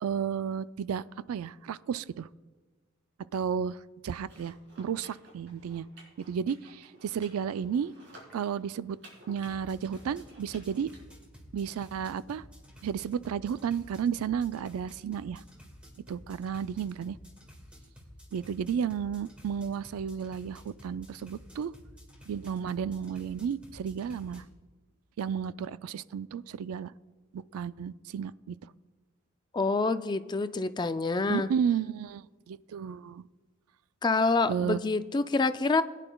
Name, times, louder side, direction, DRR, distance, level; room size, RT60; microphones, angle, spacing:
voice 1, 0.0-2.3 3.3-5.9 6.2-7.9 8.3-9.0 9.3-10.9 11.5-12.4 12.8-15.4 16.1-17.2 18.3-21.7 22.3-24.4 25.2-26.9 27.3-28.6 31.3-33.3 34.5-34.8, right 7 dB, 90° right, 16 dB, 0.3 m, -33 dB
sound 1, 4.2-11.0, right 1 dB, 55° right, 4.0 m, -55 dB
sound 2, 9.4-24.4, equal, 5° right, 1.7 m, -52 dB
voice 2, 29.5-31.5 34.0-35.8, left 3 dB, 20° left, 11 dB, 0.3 m, -27 dB
21.0 x 9.9 x 2.3 m, 1.3 s
head